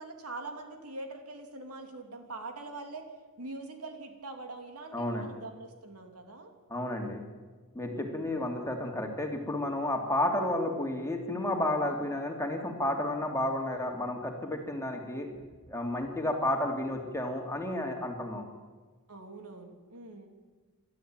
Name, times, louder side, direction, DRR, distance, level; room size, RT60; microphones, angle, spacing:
voice 1, 0.0-3.1 3.4-6.5 7.8-8.3 19.1-20.3, right 2 dB, 80° right, 4 dB, 3.0 m, -43 dB
voice 2, 4.9-5.3 6.7-7.2 7.7-15.4 15.7-18.4, left 1 dB, 15° left, 2 dB, 2.8 m, -31 dB
28.0 x 13.0 x 9.0 m, 1.4 s
head